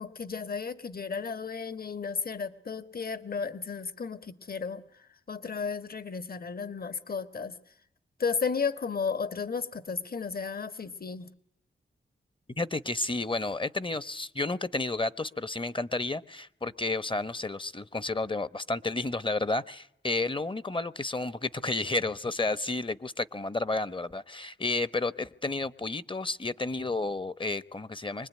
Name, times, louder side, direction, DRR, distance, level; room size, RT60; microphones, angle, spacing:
voice 1, 0.0-4.8 5.3-7.6 8.2-11.3, left 5 dB, 50° left, 12 dB, 1.8 m, -33 dB
voice 2, 12.6-28.3, left 2 dB, 25° left, 17 dB, 1.1 m, -31 dB
24.5 x 20.5 x 9.5 m, 0.73 s
cardioid pair, 55°, 20 cm